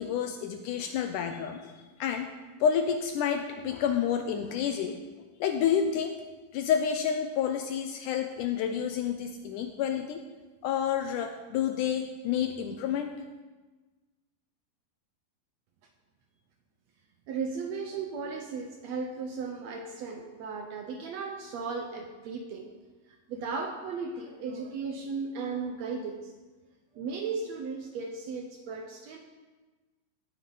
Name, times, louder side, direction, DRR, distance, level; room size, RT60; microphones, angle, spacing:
voice 1, 0.0-1.7 2.0-2.3 2.6-5.0 5.4-6.1 6.5-10.2 10.6-13.1, left 8 dB, 80° left, 6 dB, 1.9 m, -29 dB
voice 2, 17.3-22.8 23.3-26.3 26.9-29.2, right 4 dB, 75° right, 4 dB, 1.5 m, -36 dB
17.0 x 8.9 x 3.9 m, 1.3 s
omnidirectional pair, 4.1 m